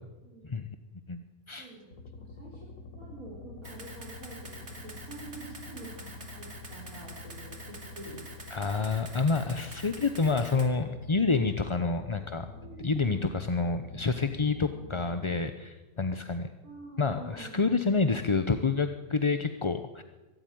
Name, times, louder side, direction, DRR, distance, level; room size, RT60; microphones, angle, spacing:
voice 1, 0.2-0.6 1.6-2.6 2.9-8.2 12.6-13.3 16.6-17.5, right 3 dB, 90° right, -5 dB, 5.0 m, -46 dB
voice 2, 1.1-1.7 8.5-12.5 12.8-16.5 17.0-20.0, left 4 dB, 25° left, 9 dB, 0.7 m, -28 dB
sound 1, 1.9-15.5, left 4 dB, 85° left, 2.0 m, -47 dB
Camera, 3.6-10.7, right 2 dB, 50° right, 3.1 m, -47 dB
23.5 x 13.5 x 9.3 m, 1.2 s
omnidirectional pair, 1.5 m